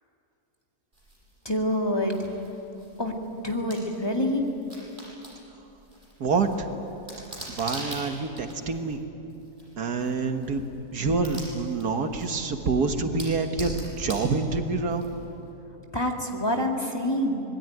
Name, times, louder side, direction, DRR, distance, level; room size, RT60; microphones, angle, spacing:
sound 1, 0.9-15.5, right 1 dB, 30° right, 7.0 m, -44 dB
voice 1, 1.4-2.2 3.0-3.1 3.4-4.4 15.9-17.4, left 1 dB, 15° left, 1 dB, 2.2 m, -26 dB
voice 2, 6.2-6.7 7.6-9.0 9.8-10.6 10.9-15.0, right 4 dB, 75° right, 6 dB, 2.0 m, -27 dB
26.0 x 20.5 x 9.3 m, 2.9 s
omnidirectional pair, 1.7 m